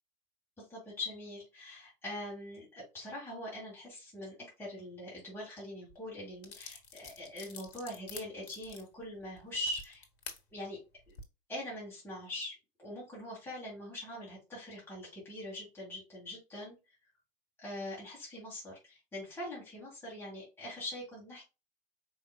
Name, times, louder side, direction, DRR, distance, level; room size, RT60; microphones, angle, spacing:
voice 1, 0.6-10.0 10.5-10.8 11.1-11.2 11.5-16.7 17.6-21.4, left 1 dB, 10° left, -7 dB, 2.6 m, -43 dB
sound 1, 5.9-6.0 6.4-10.4 11.0-11.2, left 5 dB, 60° left, 1.2 m, -48 dB
4.9 x 4.2 x 2.3 m, 0.28 s
figure-of-eight pair, 90°, 30 cm